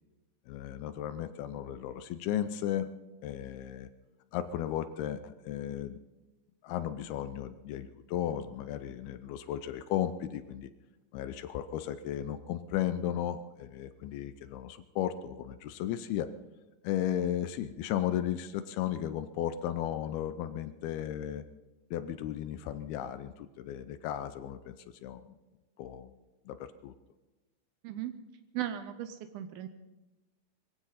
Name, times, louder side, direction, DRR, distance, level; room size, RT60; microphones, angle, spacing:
voice 1, 0.5-2.9 3.2-3.9 4.3-6.0 6.6-10.7 11.1-16.3 16.8-21.4 21.9-25.4 25.8-26.2 26.5-26.9, left 11 dB, 80° left, 11 dB, 2.4 m, -35 dB
voice 2, 28.5-29.7, right 11 dB, 75° right, 10 dB, 2.3 m, -37 dB
22.5 x 15.5 x 4.1 m, 1.1 s
omnidirectional pair, 4.8 m